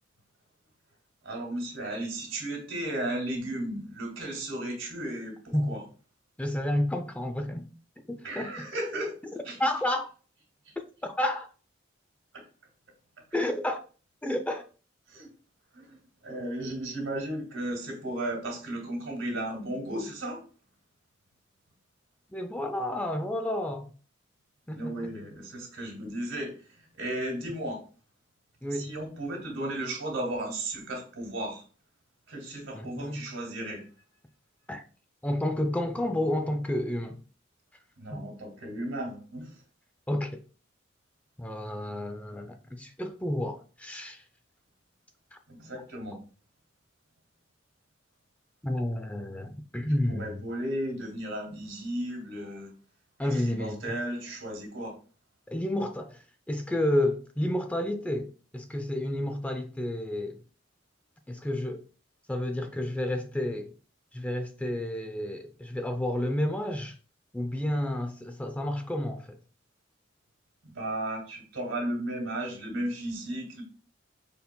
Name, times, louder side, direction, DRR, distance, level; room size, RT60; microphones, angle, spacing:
voice 1, 1.2-5.8 8.2-9.2 9.4-9.6 10.7-10.8 12.3-12.4 13.3-13.4 15.1-15.3 15.7-20.4 24.7-27.8 28.7-31.6 32.3-33.8 38.0-39.6 45.5-46.2 50.1-52.7 53.3-55.0 70.6-73.6, right 1 dB, 80° right, 2.1 m, -35 dB
voice 2, 6.4-7.7 8.1-8.5 9.6-10.1 11.0-11.5 13.3-13.8 14.2-14.6 22.3-23.9 24.7-25.1 28.6-28.9 32.7-33.2 34.7-34.8 35.2-37.2 38.1-38.2 40.1-40.4 41.4-44.2 45.3-45.4 48.6-50.4 53.2-53.8 55.5-60.4 61.3-61.8 62.3-63.7 64.1-67.0 67.3-69.3, left 1 dB, 5° left, 0.3 m, -30 dB
5.3 x 4.4 x 2.2 m
head